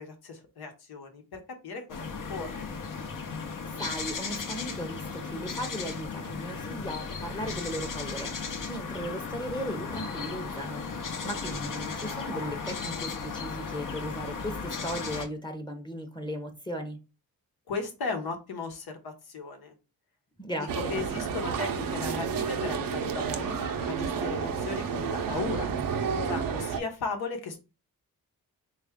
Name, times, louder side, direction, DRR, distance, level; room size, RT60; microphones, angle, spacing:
voice 1, 0.0-2.6 17.7-19.7 20.6-25.7 26.1-27.6, left 4 dB, 80° left, 0.9 m, -36 dB
sound 1, 1.9-15.2, left 5 dB, 55° left, 0.8 m, -36 dB
voice 2, 3.6-17.0 20.4-20.9, equal, 10° left, 0.7 m, -37 dB
sound 2, 20.7-26.8, right 6 dB, 65° right, 0.6 m, -31 dB
3.3 x 2.4 x 3.5 m
cardioid pair, 55°, 37 cm